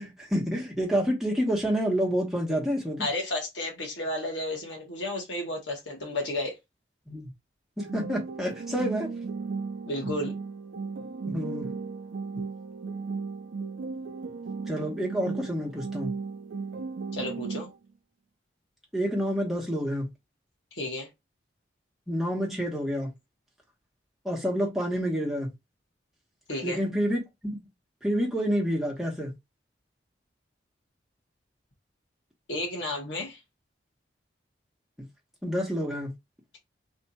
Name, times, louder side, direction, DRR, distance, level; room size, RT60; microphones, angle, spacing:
voice 1, 0.0-3.1 7.1-7.3 7.8-9.1 11.2-11.7 14.7-16.1 18.9-20.1 22.1-23.1 24.2-25.5 26.6-27.6 28.0-29.3 35.4-36.1, equal, ahead, 1.2 m, -28 dB
voice 2, 3.0-6.6 9.9-10.4 17.1-17.7 20.7-21.1 26.5-26.8 32.5-33.4, left 1 dB, 80° left, 1.5 m, -32 dB
sound 1, 7.8-17.8, right 4 dB, 80° right, 0.4 m, -35 dB
3.4 x 2.6 x 4.2 m
head